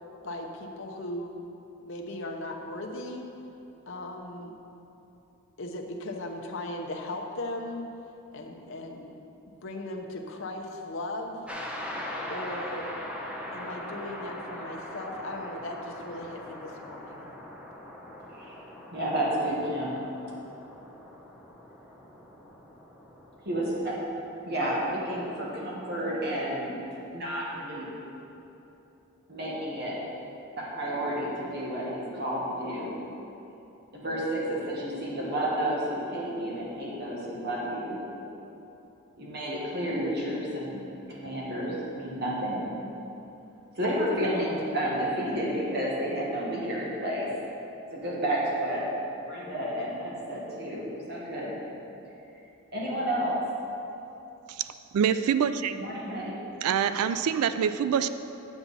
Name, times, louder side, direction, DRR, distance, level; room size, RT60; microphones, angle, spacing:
voice 1, 0.2-1.4 1.8-3.3 3.9-4.5 5.6-7.9 8.3-9.2 9.6-11.5 12.3-12.9 13.5-17.3, left 1 dB, 60° left, 1 dB, 0.8 m, -37 dB
sound 1, 11.5-24.0, left 1 dB, 5° right, 0.7 m, -41 dB
voice 2, 18.9-20.0 23.4-24.0 24.4-26.8 27.1-27.9 29.3-30.0 30.6-32.9 33.9-38.0 39.2-40.8 41.1-42.7 43.7-47.3 47.9-48.9 49.3-51.5 52.7-53.4 55.7-56.4, right 1 dB, 45° right, -5 dB, 1.5 m, -31 dB
voice 3, 54.9-55.7 56.6-58.1, right 8 dB, 85° right, 12 dB, 0.3 m, -25 dB
9.3 x 7.1 x 4.1 m, 3.0 s
head